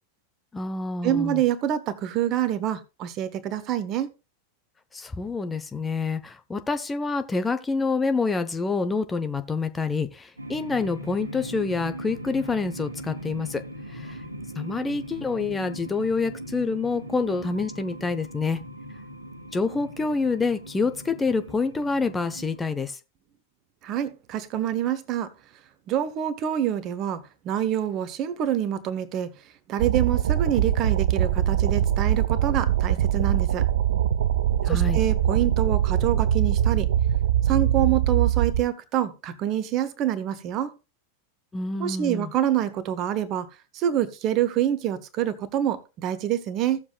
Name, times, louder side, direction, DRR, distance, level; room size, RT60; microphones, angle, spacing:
voice 1, 0.5-1.4 4.9-13.6 13.9-14.2 14.6-18.6 19.5-23.0 34.6-35.0 41.5-42.3, left 4 dB, 15° left, 0.9 m, -27 dB
voice 2, 1.0-4.1 23.8-25.3 25.9-29.3 29.7-33.7 34.7-36.9 37.4-40.7 41.8-43.5 43.7-46.8, right 11 dB, 35° right, 1.1 m, -26 dB
sound 1, 10.4-22.6, equal, 80° right, 1.9 m, -39 dB
sound 2, 29.8-38.6, right 10 dB, 60° right, 0.5 m, -22 dB
16.5 x 7.2 x 2.4 m
figure-of-eight pair, 90°, 0 cm